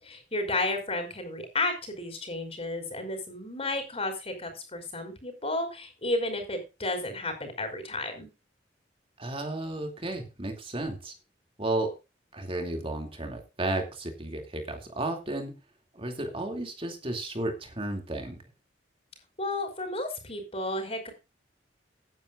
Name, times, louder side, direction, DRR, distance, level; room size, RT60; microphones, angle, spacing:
voice 1, 0.0-8.3 19.4-21.1, left 2 dB, 35° left, 6 dB, 5.3 m, -32 dB
voice 2, 9.2-11.1 11.6-11.9 12.3-15.5 16.0-18.4, right 2 dB, 30° right, 5 dB, 2.6 m, -33 dB
17.0 x 10.5 x 2.5 m, 0.28 s
head